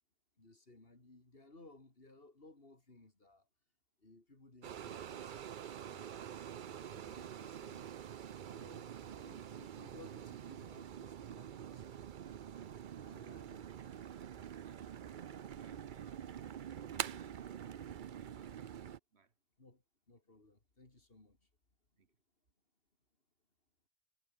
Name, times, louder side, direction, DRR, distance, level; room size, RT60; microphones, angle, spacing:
voice 1, 0.4-3.5 4.0-5.5 5.8-7.9 8.5-12.4 13.0-13.7 19.6-21.4, left 2 dB, 60° left, 3.8 m, -60 dB
sound 1, 4.6-19.0, right 9 dB, 55° right, 0.7 m, -46 dB
voice 2, 14.6-15.1 15.6-16.3 16.7-17.9 18.1-19.3 22.0-22.2, right 5 dB, 85° right, 1.9 m, -66 dB
omnidirectional pair, 1.1 m